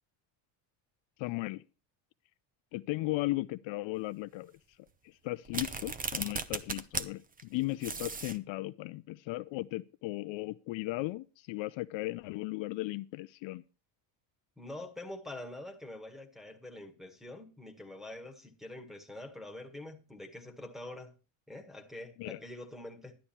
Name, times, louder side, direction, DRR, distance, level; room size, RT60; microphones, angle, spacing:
voice 1, 1.2-1.6 2.7-4.5 5.0-13.6 22.2-22.4, left 19 dB, 70° left, 0.6 m, -36 dB
sound 1, 5.5-7.1 7.4-7.5 7.8-8.4, right 4 dB, 20° right, 0.7 m, -36 dB
voice 2, 14.6-21.1 21.5-23.2, left 1 dB, ahead, 1.7 m, -45 dB
11.5 x 9.8 x 4.4 m
cardioid pair, 125°, 48 cm